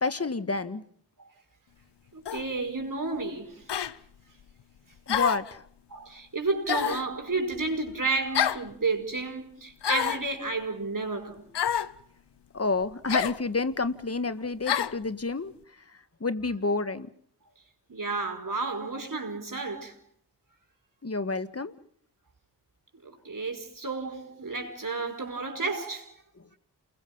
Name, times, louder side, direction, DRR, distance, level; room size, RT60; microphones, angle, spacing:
voice 1, 0.0-0.8 5.1-5.6 12.5-15.5 16.2-17.1 21.0-21.7, left 3 dB, 35° left, 1.8 m, -29 dB
voice 2, 2.1-3.7 5.9-11.5 17.9-20.0 23.0-26.1, right 3 dB, 50° right, 5.3 m, -31 dB
sound 1, 2.3-2.5 3.7-3.9 5.1-5.5 6.7-7.1 8.3-8.7 9.8-10.3 11.5-11.9 13.1-13.4 14.7-15.0, left 9 dB, 80° left, 1.0 m, -27 dB
29.0 x 21.5 x 5.5 m
cardioid pair, 45°, 41 cm